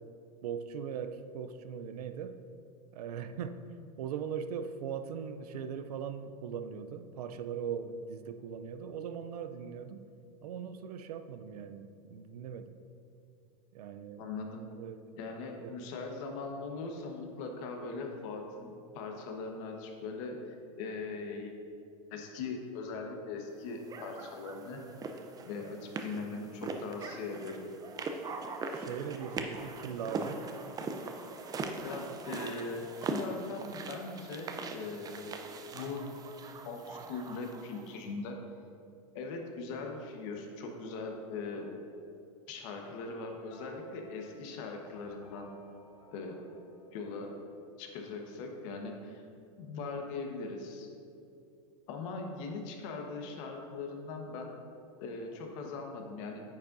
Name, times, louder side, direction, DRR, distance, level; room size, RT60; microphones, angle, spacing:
voice 1, 0.4-2.4 2.9-3.6 4.0-10.1 10.4-12.8 13.7-14.3 14.8-15.0 15.6-15.7 28.7-30.4, right 7 dB, 85° right, 9 dB, 0.5 m, -40 dB
voice 2, 14.2-14.7 15.2-21.5 22.1-24.8 25.4-27.7 31.8-35.4 35.7-36.1 36.6-38.4 39.1-41.7 42.5-45.5 46.1-46.4 46.9-47.3 47.8-49.2 49.6-50.9 51.9-54.5 55.0-56.4, left 3 dB, 55° left, 3 dB, 1.2 m, -40 dB
sound 1, 23.9-38.0, right 3 dB, 20° right, 0.5 m, -41 dB
sound 2, 43.4-47.7, left 3 dB, 90° left, 1.1 m, -57 dB
9.5 x 7.0 x 2.6 m, 2.5 s
supercardioid pair, 125°, 19 cm